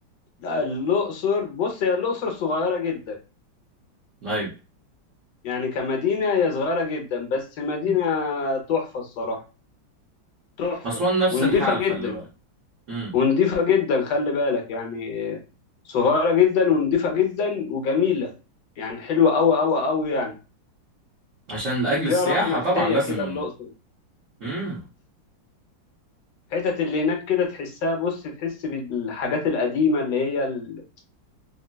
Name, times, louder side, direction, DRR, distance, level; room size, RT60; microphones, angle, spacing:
voice 1, 0.4-3.2 5.4-9.4 10.6-11.0 11.3-12.2 13.1-15.4 15.9-18.3 18.8-20.3 22.1-23.7 26.5-30.8, left 5 dB, 75° left, 2 dB, 1.3 m, -24 dB
voice 2, 10.8-12.2 12.9-13.1 21.5-23.4 24.4-24.8, right 1 dB, 50° right, -7 dB, 1.0 m, -26 dB
3.8 x 2.0 x 2.2 m, 0.31 s
omnidirectional pair, 2.1 m